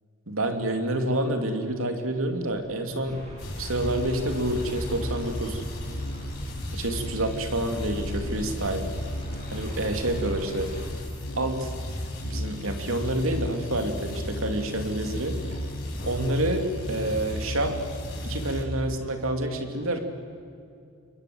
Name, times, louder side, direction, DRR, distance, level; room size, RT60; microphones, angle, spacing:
voice 1, 0.3-3.2 3.6-5.6 6.7-8.9 9.5-10.7 11.4-11.7 12.2-15.4 16.0-17.8 18.2-20.0, right 1 dB, 70° right, 5 dB, 2.9 m, -28 dB
sound 1, 2.3-16.6, equal, 45° left, 6.5 m, -49 dB
sound 2, 3.0-10.9, equal, 30° right, 7.9 m, -41 dB
sound 3, 3.4-18.6, equal, 85° left, 5.3 m, -34 dB
28.5 x 22.5 x 8.0 m, 2.4 s
head